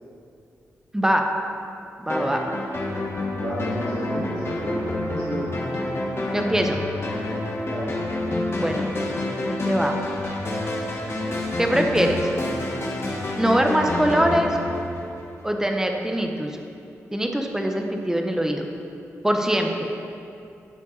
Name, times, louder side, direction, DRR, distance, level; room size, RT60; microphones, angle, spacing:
voice 1, 0.9-1.3 2.0-2.4 6.3-6.8 8.6-8.9 9.4-10.0 11.6-12.3 13.4-14.6 15.4-16.6 17.1-18.7 19.2-19.9, right 1 dB, 10° right, 3 dB, 1.1 m, -23 dB
sound 1, 2.1-15.6, left 2 dB, 50° left, 1.7 m, -28 dB
voice 2, 3.4-5.5 7.6-8.0, right 1 dB, 55° right, -7 dB, 1.9 m, -31 dB
12.0 x 8.3 x 4.1 m, 2.6 s
cardioid pair, 75°, 6 cm